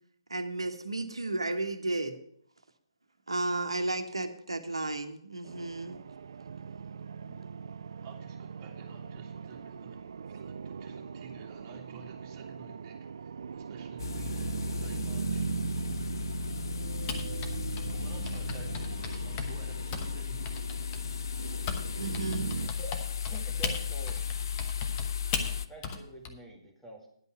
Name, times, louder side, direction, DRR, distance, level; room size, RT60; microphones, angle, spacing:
voice 1, 0.3-2.2 3.3-6.0 22.0-22.5, right 2 dB, 75° right, 8 dB, 1.2 m, -33 dB
sound 1, 5.4-22.7, right 6 dB, 55° right, 0.3 m, -39 dB
voice 2, 8.0-15.4 17.9-20.4, right 5 dB, 25° right, -1 dB, 2.4 m, -51 dB
sound 2, 14.0-25.7, left 7 dB, 55° left, 0.5 m, -35 dB
Typing, 17.1-21.8 22.1-26.3, left 5 dB, 25° left, 1.0 m, -37 dB
voice 3, 22.6-23.0 23.3-24.4 25.5-27.1, right 2 dB, 5° left, -1 dB, 1.9 m, -47 dB
10.5 x 5.5 x 8.0 m, 0.68 s
figure-of-eight pair, 135°, 3 cm